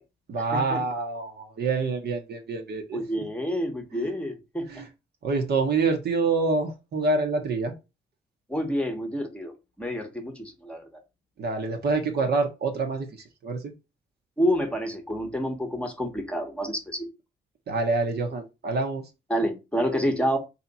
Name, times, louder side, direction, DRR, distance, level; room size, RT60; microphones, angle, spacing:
voice 1, 0.3-3.2 4.0-4.1 4.7-4.9 5.2-7.7 11.4-13.7 17.7-19.0, right 3 dB, 55° right, 1.0 m, -27 dB
voice 2, 2.9-4.7 8.5-10.8 14.4-17.1 19.3-20.4, equal, 5° left, 1.0 m, -28 dB
3.3 x 2.9 x 4.1 m
cardioid pair, 90°, 20 cm